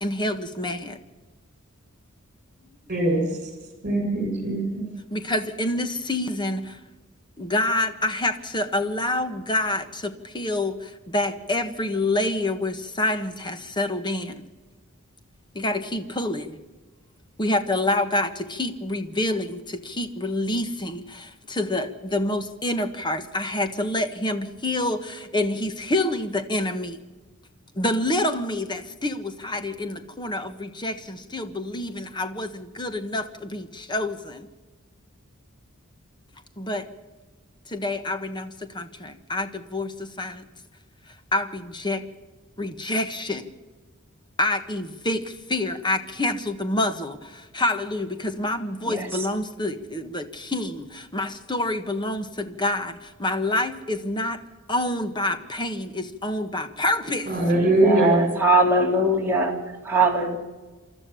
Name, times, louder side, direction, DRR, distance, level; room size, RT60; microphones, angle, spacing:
voice 1, 0.0-1.0 5.1-6.8 7.4-14.4 15.5-16.6 17.4-27.0 27.7-34.5 36.6-36.9 37.7-40.4 41.1-42.0 42.6-43.5 44.4-54.4 54.7-57.4, left 1 dB, 20° left, 9 dB, 1.5 m, -27 dB
voice 2, 2.9-3.2 3.8-4.9 57.3-58.2, right 1 dB, 40° right, 3 dB, 6.6 m, -21 dB
voice 3, 57.5-60.4, right 2 dB, 10° right, -1 dB, 3.0 m, -22 dB
28.0 x 13.5 x 7.1 m, 1.3 s
head